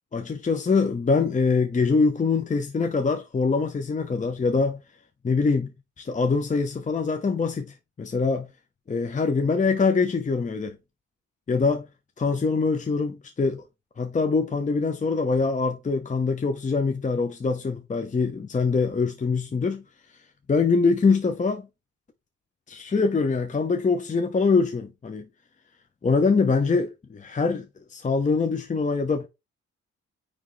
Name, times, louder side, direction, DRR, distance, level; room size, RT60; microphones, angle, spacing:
voice 1, 0.1-4.8 5.2-5.7 6.0-8.5 8.9-10.8 11.5-11.9 12.2-13.6 14.0-19.8 20.5-21.6 22.7-25.3 26.0-29.3, left 4 dB, 25° left, 0.9 m, -24 dB
9.4 x 3.4 x 3.2 m
cardioid pair, 90°, 30 cm